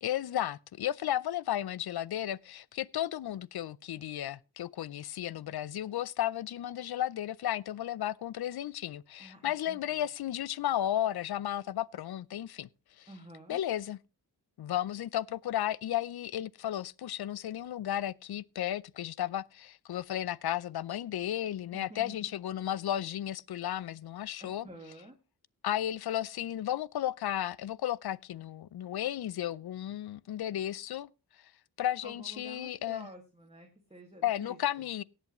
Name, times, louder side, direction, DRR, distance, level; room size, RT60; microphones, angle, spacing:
voice 1, 0.0-12.7 13.0-13.2 13.5-14.0 14.6-25.0 25.6-31.1 31.8-33.1 34.2-35.0, left 12 dB, 70° left, 0.5 m, -34 dB
voice 2, 9.2-10.0 13.1-13.6 21.7-22.2 24.4-25.2 32.0-34.6, right 1 dB, 15° right, 1.9 m, -50 dB
17.5 x 8.4 x 3.0 m
wide cardioid pair, 85°, 39 cm